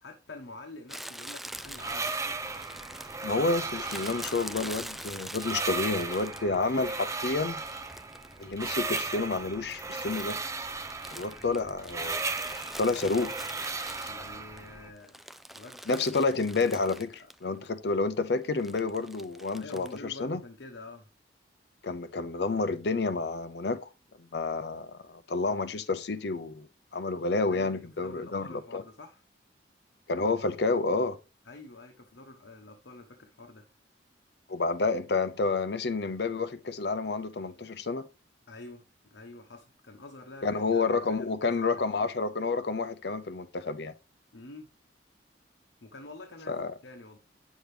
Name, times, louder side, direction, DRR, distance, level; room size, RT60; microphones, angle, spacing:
voice 1, 0.0-2.1 11.2-11.7 14.1-15.2 15.5-16.0 17.2-17.3 19.6-21.1 27.5-29.2 31.4-33.7 38.5-41.3 41.6-41.8 44.3-44.7 45.8-47.2, left 2 dB, 75° left, 1.2 m, -48 dB
Crumpling crinkling, 0.9-6.6 7.1-9.3 9.5-14.6 15.0-17.4 17.6-17.7 18.6-20.0, right 1 dB, ahead, 0.3 m, -44 dB
sound 1, 1.6-14.9, right 3 dB, 15° right, 0.7 m, -36 dB
voice 2, 3.2-7.6 8.4-10.4 11.1-12.3 12.8-13.4 15.9-20.4 21.8-23.9 24.2-26.7 26.9-28.8 30.1-31.2 34.5-38.1 40.4-43.9 46.5-46.7, left 3 dB, 60° left, 0.7 m, -29 dB
9.1 x 6.4 x 3.3 m
head